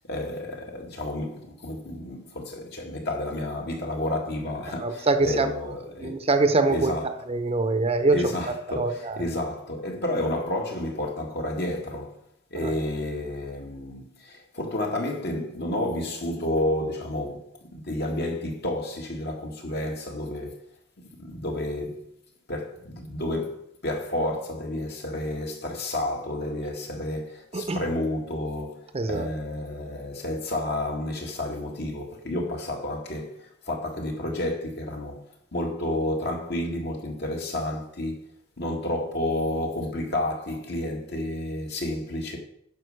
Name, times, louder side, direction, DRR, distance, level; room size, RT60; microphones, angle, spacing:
voice 1, 0.1-6.2 6.7-7.1 8.1-12.2 12.5-20.6 21.2-22.1 22.5-35.2 35.5-38.2 38.6-42.4, left 1 dB, 55° left, 1.9 m, -30 dB
voice 2, 4.8-5.5 6.0-6.9 7.3-8.3 8.7-9.2 12.5-12.7 27.5-27.8 28.9-29.3, right 3 dB, 30° right, 0.7 m, -24 dB
9.4 x 5.3 x 6.5 m
head